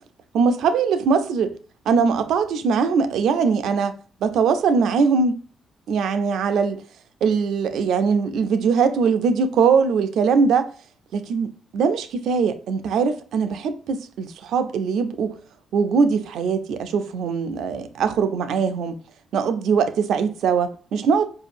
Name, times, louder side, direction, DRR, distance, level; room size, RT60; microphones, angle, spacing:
voice 1, 0.3-1.6 1.9-4.0 4.2-5.4 5.9-6.8 7.2-10.7 11.1-15.4 15.7-18.9 19.3-21.3, right 5 dB, 75° right, 0.5 m, -21 dB
4.6 x 2.7 x 2.5 m
cardioid pair, 90°, 0 cm